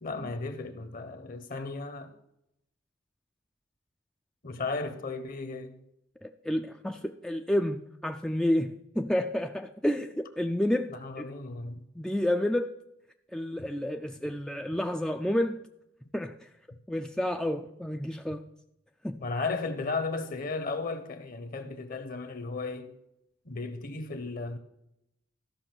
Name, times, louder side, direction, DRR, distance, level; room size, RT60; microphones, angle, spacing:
voice 1, 0.0-2.1 4.4-5.8 10.9-11.8 13.6-13.7 19.2-22.9 23.4-24.6, left 3 dB, 45° left, 1.0 m, -35 dB
voice 2, 6.2-11.3 12.0-12.7 13.3-15.6 16.1-16.5 16.9-18.5 19.0-19.2, left 1 dB, 5° left, 0.3 m, -30 dB
13.5 x 5.9 x 6.0 m
head